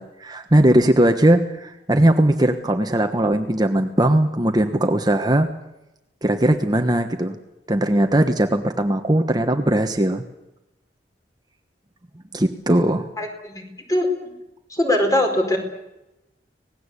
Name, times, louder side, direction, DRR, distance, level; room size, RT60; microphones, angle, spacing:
voice 1, 0.0-5.5 6.2-7.4 7.7-10.2 12.3-13.1, right 1 dB, 25° right, 6 dB, 1.2 m, -19 dB
voice 2, 13.2-14.3 14.7-15.6, left 1 dB, 20° left, 4 dB, 4.6 m, -22 dB
25.5 x 19.0 x 8.3 m, 0.94 s
head